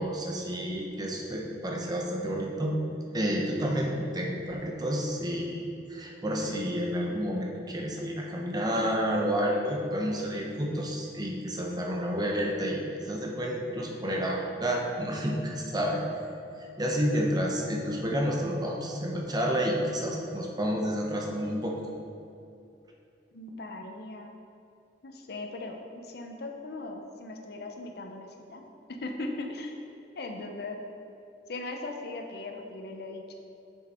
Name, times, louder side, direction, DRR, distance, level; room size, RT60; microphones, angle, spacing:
voice 1, 0.0-2.8 3.1-16.0 16.8-21.8, equal, 25° right, 0 dB, 0.9 m, -30 dB
voice 2, 23.3-24.3 25.0-28.6 28.9-29.8 30.2-30.8 31.5-33.3, left 2 dB, 65° left, 3 dB, 0.8 m, -39 dB
6.7 x 6.4 x 4.4 m, 2.7 s
head